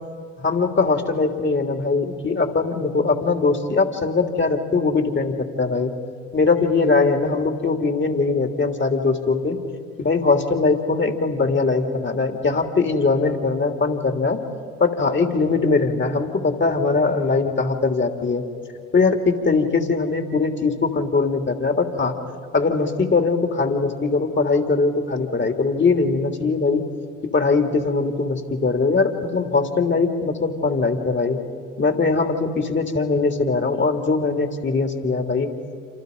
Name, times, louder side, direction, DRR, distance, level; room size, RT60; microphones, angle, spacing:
voice 1, 0.4-5.9 6.3-9.6 10.0-14.4 14.8-18.4 18.9-22.1 22.5-26.8 27.3-31.4 31.8-35.5, left 4 dB, 35° left, 4 dB, 3.4 m, -21 dB
28.0 x 27.0 x 5.6 m, 2.1 s
hypercardioid pair, 50°, 35 cm